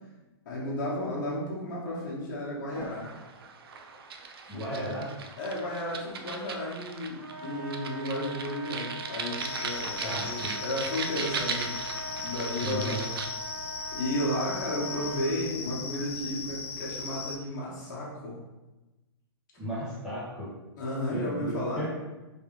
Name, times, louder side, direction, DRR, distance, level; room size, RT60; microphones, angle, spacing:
voice 1, 0.4-3.1 4.5-4.9 5.4-11.8 12.1-13.1 13.8-18.4 20.8-21.9, left 1 dB, 45° left, -5 dB, 1.2 m, -33 dB
sound 1, 2.7-13.3, right 5 dB, 60° right, 0.4 m, -38 dB
voice 2, 4.5-5.1 10.0-10.5 12.6-13.0 19.6-20.5 21.1-21.9, equal, 5° right, -10 dB, 0.7 m, -34 dB
Trumpet, 7.2-15.4, right 1 dB, 75° right, 0.9 m, -41 dB
sound 2, 9.4-17.4, left 5 dB, 65° left, 0.5 m, -38 dB
3.3 x 3.1 x 3.1 m, 1.1 s
hypercardioid pair, 170°, 14 cm